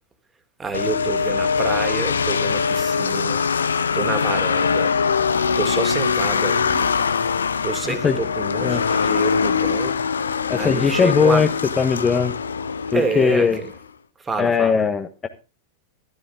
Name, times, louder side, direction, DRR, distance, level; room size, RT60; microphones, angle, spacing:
voice 1, 0.6-3.4 3.9-4.9 5.6-6.9 7.6-10.0 10.6-11.5 12.9-13.7 14.3-14.7, right 4 dB, 15° right, 2.7 m, -28 dB
sound 1, 0.7-13.8, left 5 dB, 70° left, 0.9 m, -22 dB
voice 2, 7.9-8.2 8.6-8.8 10.5-11.5 11.8-12.3 12.9-13.6 14.4-15.3, left 6 dB, 20° left, 1.4 m, -19 dB
14.5 x 13.5 x 3.7 m
figure-of-eight pair, 90°, 0 cm